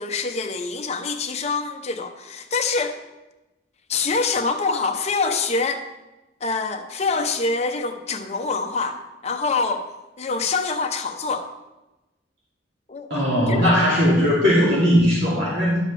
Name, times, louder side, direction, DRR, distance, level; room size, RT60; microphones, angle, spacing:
voice 1, 0.0-3.0 3.9-5.8 6.4-9.9 10.2-11.5 12.9-13.8, left 4 dB, 35° left, 4 dB, 0.7 m, -25 dB
voice 2, 13.1-15.8, equal, 65° right, -7 dB, 2.4 m, -18 dB
11.5 x 7.3 x 3.3 m, 1.0 s
head